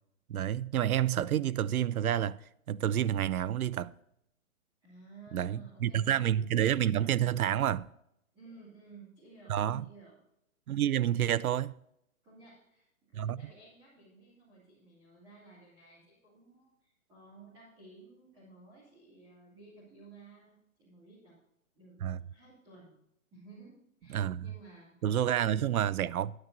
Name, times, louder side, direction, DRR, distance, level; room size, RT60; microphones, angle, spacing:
voice 1, 0.3-2.4 2.7-3.9 5.3-7.9 9.5-9.9 10.7-11.7 13.1-13.4 22.0-22.2 24.1-24.5 25.0-26.3, right 11 dB, 80° right, 0.5 m, -29 dB
voice 2, 4.8-6.2 8.3-10.1 12.2-21.4 21.7-25.7, right 3 dB, 10° right, 2.4 m, -55 dB
16.0 x 9.5 x 2.6 m
hypercardioid pair, 175°, 43 cm